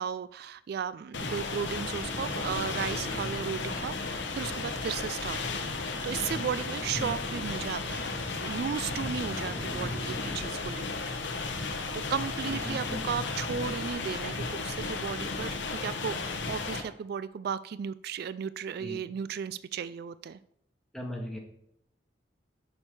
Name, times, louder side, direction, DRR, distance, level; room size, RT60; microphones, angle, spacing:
voice 1, 0.0-8.1 8.4-11.0 11.9-16.2 16.5-20.4, right 7 dB, 55° right, 16 dB, 0.3 m, -35 dB
sound 1, 1.1-16.8, left 3 dB, 75° left, 1.2 m, -34 dB
sound 2, 1.7-11.0, left 1 dB, 35° left, 1.6 m, -44 dB
voice 2, 12.5-13.1 18.8-19.0 20.9-21.4, left 1 dB, 5° left, 0 dB, 1.8 m, -38 dB
9.7 x 6.3 x 4.8 m, 0.76 s
head